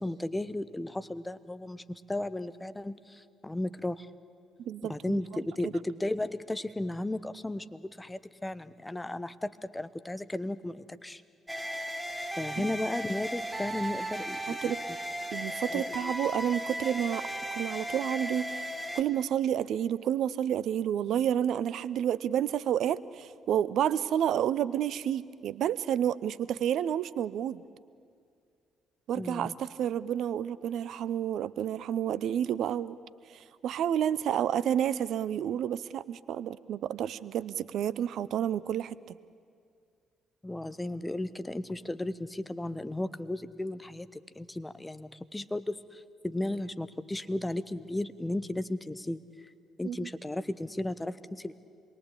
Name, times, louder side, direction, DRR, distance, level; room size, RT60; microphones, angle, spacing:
voice 1, 0.0-4.1 4.8-11.2 12.4-14.7 15.7-16.1 29.2-29.5 40.4-49.2 49.8-51.5, left 1 dB, 10° left, 13 dB, 1.0 m, -35 dB
voice 2, 4.6-5.2 12.6-12.7 14.6-14.8 15.3-18.7 18.9-27.6 29.1-33.0 33.3-39.2 49.8-50.1, right 10 dB, 55° right, 18 dB, 0.6 m, -30 dB
sound 1, 11.5-19.0, equal, 5° right, 1.8 m, -36 dB
27.0 x 22.5 x 8.5 m, 2.3 s
figure-of-eight pair, 45°, 0 cm